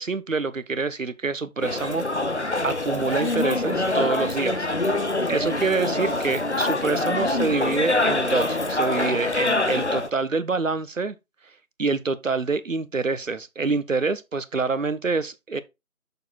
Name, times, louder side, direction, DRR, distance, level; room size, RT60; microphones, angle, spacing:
voice 1, 0.0-2.3 2.6-4.7 5.3-11.2 11.8-15.6, right 4 dB, 65° right, 0.8 m, -26 dB
sound 1, 1.6-10.1, left 2 dB, 50° left, 0.7 m, -25 dB
6.6 x 4.5 x 4.2 m
figure-of-eight pair, 170°, 43 cm